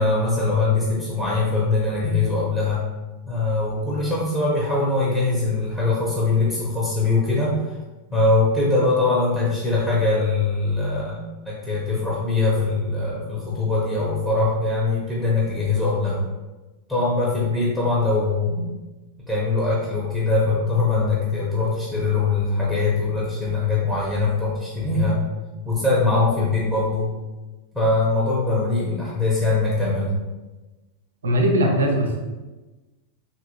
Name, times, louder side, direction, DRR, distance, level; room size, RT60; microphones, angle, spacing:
voice 1, 0.0-2.8 3.3-7.8 8.1-16.2 16.9-18.7 19.3-25.2 25.6-27.1 27.7-30.1, left 3 dB, ahead, -7 dB, 0.8 m, -22 dB
voice 2, 31.2-32.2, equal, 70° right, 2 dB, 0.5 m, -20 dB
2.8 x 2.8 x 2.6 m, 1.2 s
figure-of-eight pair, 90°, 0 cm